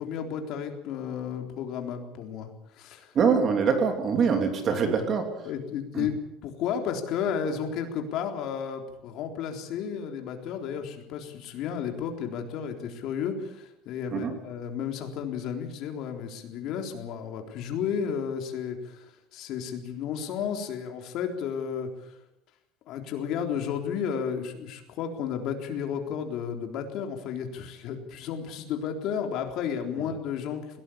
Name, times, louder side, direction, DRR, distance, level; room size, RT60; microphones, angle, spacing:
voice 1, 0.0-3.1 5.5-22.1 22.9-30.8, left 7 dB, 50° left, 4 dB, 3.8 m, -33 dB
voice 2, 3.1-5.3 5.9-6.1 14.1-14.3, right 6 dB, 30° right, 5 dB, 3.2 m, -24 dB
21.5 x 17.5 x 8.7 m, 0.87 s
cardioid pair, 165°, 0 cm